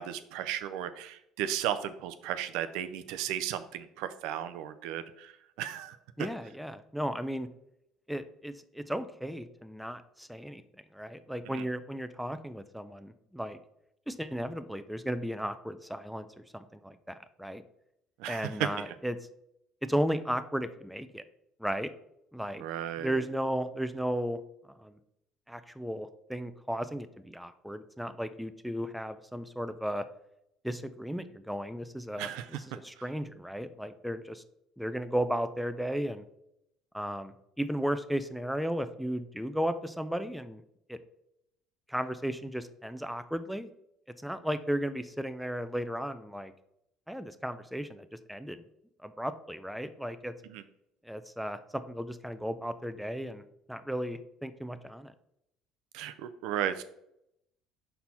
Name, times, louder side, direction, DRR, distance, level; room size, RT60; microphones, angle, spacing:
voice 1, 0.0-5.3 5.6-6.0 11.5-11.6 18.2-18.7 22.6-23.2 32.2-32.4 50.5-50.6 55.9-56.8, right 11 dB, 80° right, 11 dB, 0.5 m, -35 dB
voice 2, 6.2-7.5 8.1-10.6 10.9-13.6 14.1-16.3 16.5-17.6 18.3-19.2 19.8-21.2 21.6-21.9 22.3-22.6 23.0-24.4 24.8-25.0 25.5-30.1 30.6-34.4 34.8-36.2 36.9-40.6 40.9-41.0 41.9-43.7 44.2-46.5 47.1-48.6 49.0-50.3 51.0-53.4 53.7-55.1, equal, ahead, 10 dB, 0.5 m, -35 dB
5.5 x 4.3 x 4.3 m, 0.79 s
supercardioid pair, 100°, 0 cm